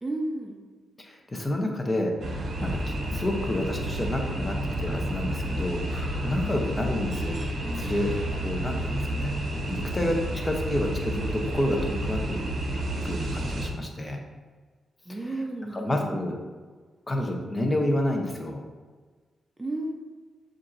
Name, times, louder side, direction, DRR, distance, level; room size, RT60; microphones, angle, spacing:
voice 1, 0.0-0.6 6.4-6.6 10.0-10.4 15.1-16.2 17.7-17.8 19.6-19.9, right 2 dB, 15° right, 1 dB, 0.5 m, -33 dB
voice 2, 1.0-2.1 2.6-7.3 7.8-14.2 15.1-15.4 15.7-16.4 17.1-18.6, left 1 dB, 25° left, 2 dB, 0.7 m, -29 dB
sound 1, 2.2-13.7, right 1 dB, 65° right, 0.7 m, -30 dB
7.1 x 2.6 x 2.6 m, 1.4 s
cardioid pair, 100°, 0 cm